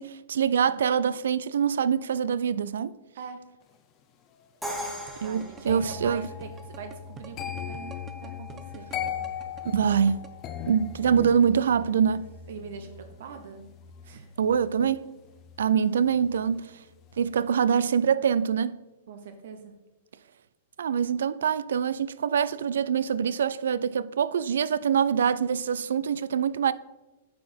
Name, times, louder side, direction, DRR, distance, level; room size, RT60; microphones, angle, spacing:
voice 1, 0.0-2.9 5.2-6.3 9.6-10.2 10.6-12.3 14.4-15.0 15.6-16.7 17.2-18.8 20.8-26.7, right 7 dB, 85° right, 0.3 m, -24 dB
Crash cymbal, 4.6-6.5, equal, 5° right, 1.1 m, -37 dB
voice 2, 4.8-9.3 12.5-12.9 13.2-13.6 14.0-14.3 19.1-19.7, right 6 dB, 65° right, 0.8 m, -43 dB
sound 1, 5.1-10.3, right 7 dB, 20° right, 0.5 m, -46 dB
sound 2, 5.7-16.6 16.9-17.3, left 8 dB, 30° left, 0.6 m, -39 dB
8.3 x 4.8 x 4.3 m
hypercardioid pair, 150°, 0 cm